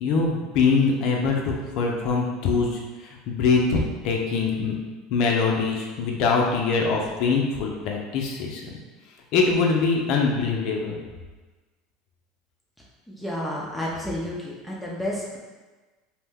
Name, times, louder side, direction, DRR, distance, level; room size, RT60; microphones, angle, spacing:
voice 1, 0.0-2.7 3.3-3.8 4.0-4.7 5.1-8.6 9.3-11.0, left 4 dB, 65° left, 0 dB, 0.4 m, -23 dB
voice 2, 13.1-15.4, left 1 dB, ahead, -5 dB, 0.5 m, -31 dB
2.6 x 2.1 x 3.4 m, 1.3 s
supercardioid pair, 105°, 0 cm